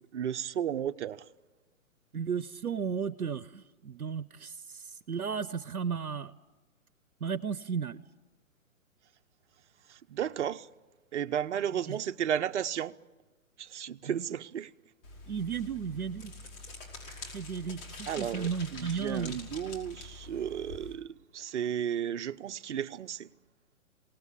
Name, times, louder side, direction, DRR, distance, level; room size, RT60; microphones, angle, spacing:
voice 1, 0.1-1.2 9.9-10.7 11.1-12.9 13.6-14.7 17.1-17.2 18.1-23.3, right 9 dB, 55° right, 0.9 m, -33 dB
voice 2, 2.1-6.3 7.2-8.0 11.7-12.0 14.0-14.2 15.3-16.3 17.3-19.4, right 6 dB, 85° right, 0.9 m, -34 dB
sound 1, 15.0-20.9, left 3 dB, 40° left, 5.2 m, -46 dB
27.5 x 18.5 x 8.4 m
figure-of-eight pair, 130°, 42 cm